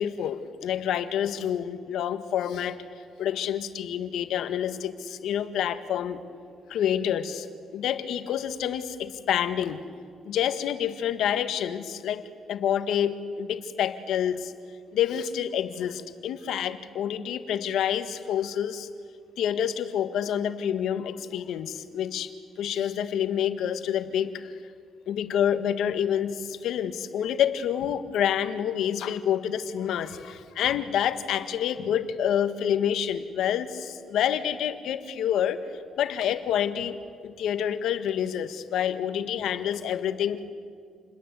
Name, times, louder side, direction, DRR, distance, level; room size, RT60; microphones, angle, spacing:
voice 1, 0.0-2.8 3.2-6.2 6.7-7.5 7.7-9.8 10.2-14.5 14.9-18.9 19.4-22.3 22.6-24.5 25.1-35.6 36.0-40.5, left 9 dB, 80° left, 10 dB, 1.7 m, -28 dB
29.0 x 21.5 x 8.4 m, 2.2 s
cardioid pair, 90°, 0 cm